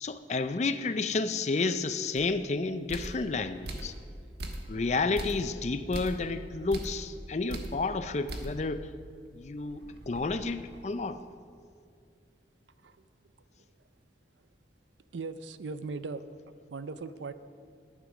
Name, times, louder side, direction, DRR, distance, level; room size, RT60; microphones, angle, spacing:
voice 1, 0.0-3.9 4.7-8.9 9.3-11.2, left 3 dB, 40° left, 11 dB, 0.4 m, -31 dB
sound 1, 2.2-2.3 2.9-3.2 3.6-4.0 4.4-4.8 5.2-5.5 5.9-6.2 6.7-7.0 7.5-7.8 8.3-8.6 9.0-9.1 9.6-11.1, right 1 dB, 65° right, 1.3 m, -40 dB
voice 2, 15.1-16.2 16.7-17.3, right 4 dB, 85° right, 13 dB, 0.5 m, -38 dB
11.0 x 10.0 x 6.2 m, 2.3 s
head